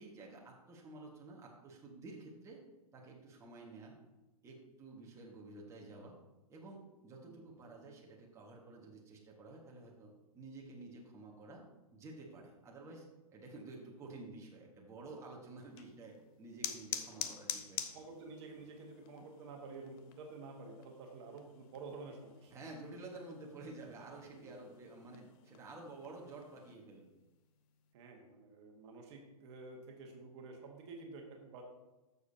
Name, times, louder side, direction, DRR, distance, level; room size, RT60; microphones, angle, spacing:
voice 1, 0.0-2.6 2.9-4.0 4.4-6.2 6.5-11.6 11.9-13.1 13.3-17.8 22.5-27.1, right 2 dB, 15° right, -2 dB, 1.6 m, -51 dB
voice 2, 7.2-7.6 17.9-22.6 24.3-24.5 27.9-31.6, right 3 dB, 45° right, 1 dB, 1.5 m, -50 dB
sound 1, 15.6-26.7, left 10 dB, 35° left, 0.7 m, -48 dB
12.5 x 6.9 x 2.8 m, 1.1 s
hypercardioid pair, 125°, 19 cm